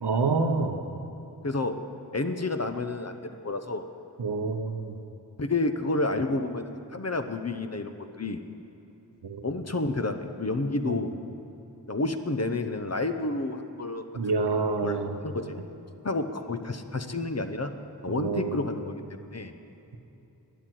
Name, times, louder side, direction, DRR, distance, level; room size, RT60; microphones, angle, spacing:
voice 1, 0.0-0.8 4.2-4.9 9.2-9.4 10.9-11.0 14.1-15.2 18.1-18.6, right 4 dB, 85° right, 5 dB, 1.0 m, -27 dB
voice 2, 1.4-1.8 2.1-3.9 5.4-8.4 9.4-11.1 11.9-14.4 14.8-15.5 16.0-17.7 18.0-19.5, left 2 dB, 40° left, 7 dB, 0.8 m, -30 dB
12.5 x 9.2 x 7.8 m, 3.0 s
wide cardioid pair, 60°, 39 cm